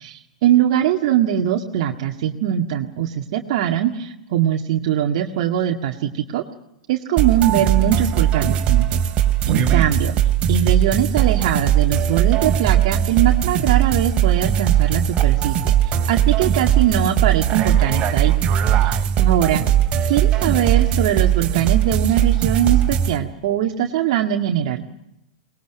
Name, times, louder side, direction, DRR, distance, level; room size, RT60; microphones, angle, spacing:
voice 1, 0.0-6.4 6.9-9.0 9.5-10.1 10.5-18.4 18.8-19.7 20.1-24.9, right 10 dB, 55° right, 3 dB, 1.9 m, -21 dB
sound 1, 7.2-23.2, right 10 dB, 35° right, 2.9 m, -19 dB
23.5 x 20.5 x 9.2 m, 0.85 s
hypercardioid pair, 105°, 4 cm